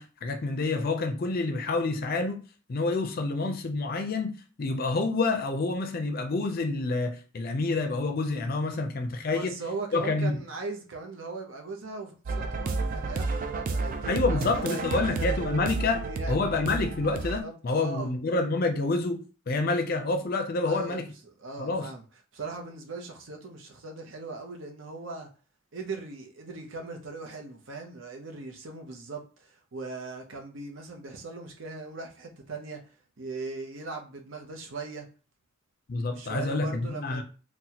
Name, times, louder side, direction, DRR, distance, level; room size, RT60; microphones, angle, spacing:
voice 1, 0.0-2.4 2.7-4.3 4.6-9.5 9.9-10.4 14.1-21.1 21.6-21.9 35.9-37.2, left 3 dB, 45° left, 0.5 m, -28 dB
voice 2, 9.3-15.3 15.7-16.5 17.4-18.1 20.6-21.0 21.4-22.0 22.3-25.3 25.7-32.8 33.2-35.1 36.1-37.2, right 3 dB, 65° right, 0.7 m, -39 dB
sound 1, 12.3-17.4, right 3 dB, 40° right, 0.3 m, -31 dB
4.0 x 2.2 x 2.8 m
head